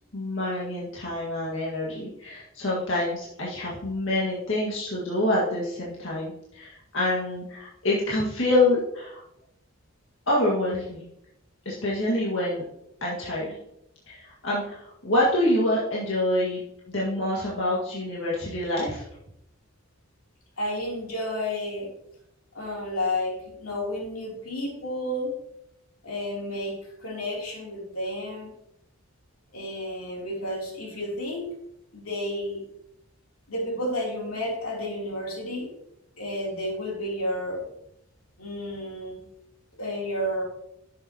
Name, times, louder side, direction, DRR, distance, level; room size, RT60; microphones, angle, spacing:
voice 1, 0.1-9.2 10.3-11.0 11.7-12.6 13.0-13.6 14.1-19.0, left 1 dB, 65° left, -6 dB, 1.9 m, -26 dB
voice 2, 20.6-21.9 22.5-25.3 26.0-28.5 29.5-31.5 31.9-32.6 33.5-35.7 36.2-37.6 38.4-39.2 39.8-40.4, left 1 dB, 90° left, -2 dB, 3.2 m, -31 dB
10.5 x 7.3 x 2.9 m, 0.80 s
head